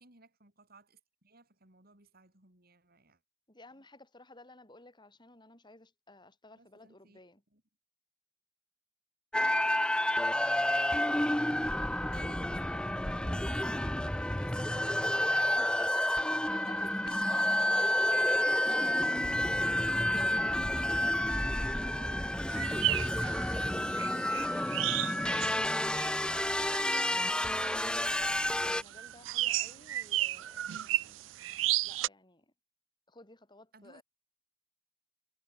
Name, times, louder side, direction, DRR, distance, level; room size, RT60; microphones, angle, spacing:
voice 1, 0.0-3.2 6.6-7.2 7.5-7.6 10.9-14.0 14.3-15.8 16.1-16.7 17.0-17.2 18.7-19.6 20.1-20.9 21.6-22.3 24.5-24.7 33.7-34.0, right 3 dB, 55° right, 6.2 m, -59 dB
voice 2, 3.5-7.4 15.5-17.6 18.3-18.4 18.6-18.9 19.9-21.5 25.2-31.3 31.8-32.5 33.1-34.0, left 2 dB, 25° left, 7.9 m, -54 dB
sound 1, 9.3-28.8, left 1 dB, 5° left, 0.5 m, -30 dB
sound 2, 22.5-32.1, right 15 dB, 85° right, 0.4 m, -35 dB
head